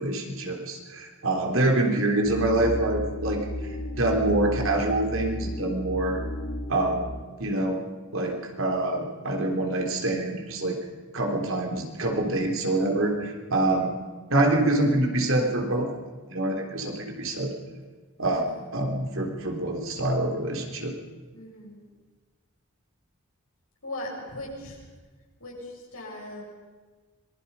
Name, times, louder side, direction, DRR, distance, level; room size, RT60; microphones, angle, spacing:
voice 1, 0.0-3.5 3.9-6.2 6.7-7.1 7.4-7.8 8.1-10.8 11.1-14.0 14.3-15.9 16.3-17.5 18.2-18.4 18.7-20.9, right 2 dB, 70° right, 2 dB, 3.4 m, -25 dB
sound 1, 2.2-7.2, equal, 70° left, 2.6 m, -33 dB
voice 2, 18.3-18.7 21.3-21.8 23.8-24.8 25.4-26.4, left 1 dB, 85° left, -2 dB, 6.9 m, -39 dB
25.5 x 20.0 x 5.5 m, 1.4 s
head